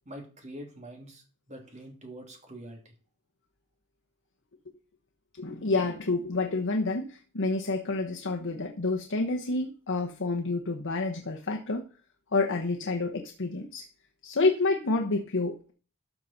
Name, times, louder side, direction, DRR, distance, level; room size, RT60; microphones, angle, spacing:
voice 1, 0.0-2.9, right 1 dB, 30° right, 2.6 m, -45 dB
voice 2, 5.4-11.8 12.3-13.9 14.2-15.7, left 3 dB, 60° left, 1.1 m, -29 dB
13.0 x 5.9 x 4.1 m
head